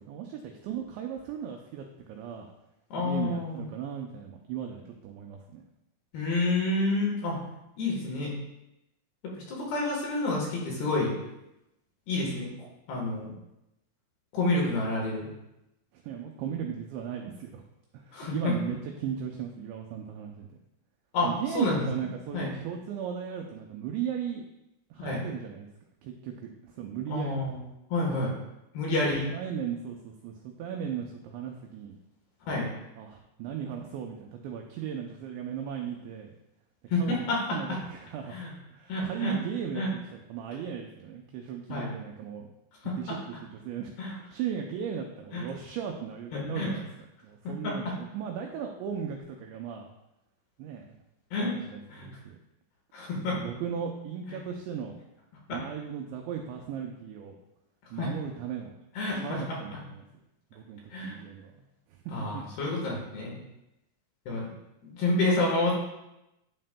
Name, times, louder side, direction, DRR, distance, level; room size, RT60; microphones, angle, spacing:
voice 1, 0.0-2.5 3.0-5.6 15.9-17.6 17.9-20.6 21.2-24.5 24.9-25.7 26.0-27.4 29.3-32.0 33.0-36.3 37.0-37.3 37.5-38.3 38.7-42.5 42.8-46.9 47.2-49.9 50.6-51.0 51.4-52.4 53.3-55.0 55.5-57.4 57.9-58.7 59.1-60.1 60.5-61.5 61.9-62.4, right 8 dB, 90° right, 2 dB, 2.5 m, -37 dB
voice 2, 2.9-3.7 6.1-7.4 7.8-8.3 9.4-11.1 12.1-12.5 12.9-13.3 14.3-15.3 18.1-18.5 21.1-21.8 22.3-22.5 25.0-25.2 27.1-27.6 27.9-28.3 28.7-29.3 32.5-32.7 36.9-37.4 38.3-38.5 38.9-39.4 39.7-39.9 41.7-41.9 42.8-43.2 44.0-44.2 45.3-45.4 46.3-46.7 47.4-47.9 51.3-51.5 51.9-52.1 52.9-53.4 55.5-55.6 58.0-58.1 59.0-59.4 60.9-61.2 62.1-63.4 64.3-64.5 64.8-65.8, left 2 dB, 65° left, -2 dB, 2.8 m, -29 dB
11.0 x 7.6 x 2.2 m, 0.91 s
omnidirectional pair, 5.9 m